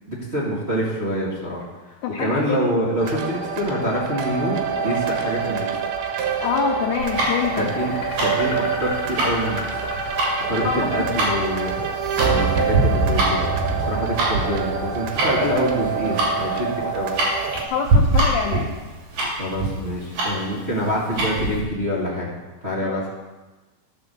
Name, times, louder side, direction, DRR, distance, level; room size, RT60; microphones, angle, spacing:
voice 1, 0.1-1.6 2.1-5.7 7.6-9.6 10.5-11.8 12.2-13.5 13.8-17.1 19.4-22.3 22.6-23.1, equal, 25° right, -7 dB, 1.6 m, -26 dB
voice 2, 2.0-2.6 6.4-7.7 10.6-11.2 17.7-18.7 22.8-23.1, left 7 dB, 90° left, 3 dB, 1.7 m, -26 dB
sound 1, 3.0-17.7, right 5 dB, 85° right, 3.0 m, -26 dB
sound 2, 6.9-14.0, left 3 dB, 30° left, 2.8 m, -36 dB
Tick-tock, 7.0-21.6, right 2 dB, 50° right, 4.5 m, -25 dB
12.5 x 5.8 x 7.0 m, 1.2 s
omnidirectional pair, 4.4 m